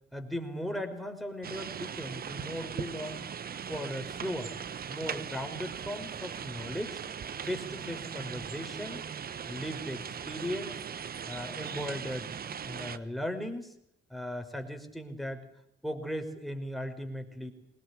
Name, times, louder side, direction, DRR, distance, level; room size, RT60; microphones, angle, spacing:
voice 1, 0.1-3.2 3.7-4.5 4.9-7.0 7.4-9.0 9.5-10.8 11.3-12.3 12.6-13.7 14.1-15.4 15.8-17.5, equal, ahead, 4 dB, 5.4 m, -37 dB
sound 1, 1.4-13.0, right 7 dB, 50° right, 1.4 m, -39 dB
23.5 x 20.0 x 8.6 m, 0.73 s
cardioid pair, 90°, 20 cm